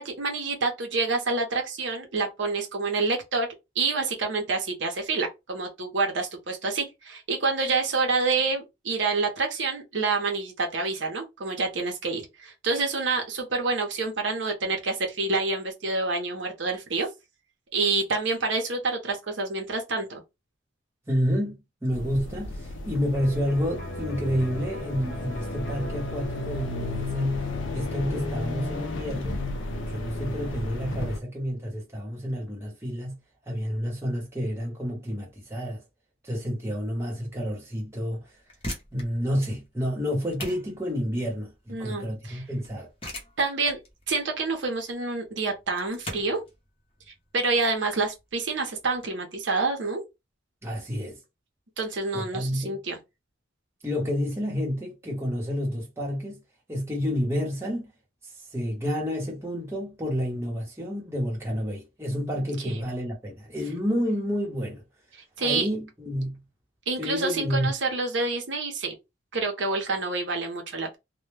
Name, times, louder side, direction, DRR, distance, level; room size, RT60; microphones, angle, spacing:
voice 1, 0.0-3.5 3.8-17.1 17.7-20.2 41.7-42.4 43.4-43.8 44.1-46.4 47.3-50.0 51.8-53.0 62.6-62.8 65.4-65.7 66.9-68.9 69.3-71.0, right 3 dB, 70° right, 0.7 m, -27 dB
voice 2, 21.1-27.4 27.7-29.4 29.9-33.2 33.5-35.8 36.2-38.2 38.9-42.9 50.6-51.2 52.1-52.8 53.8-56.4 56.7-57.9 58.5-64.8 65.4-66.4 67.0-67.7, equal, 15° right, 0.8 m, -29 dB
sound 1, 21.9-31.2, left 2 dB, 80° left, 0.5 m, -33 dB
Electric guitar, 23.1-30.8, equal, 60° left, 0.9 m, -45 dB
sound 2, 38.4-49.1, left 1 dB, 30° left, 0.8 m, -42 dB
2.1 x 2.1 x 3.2 m
head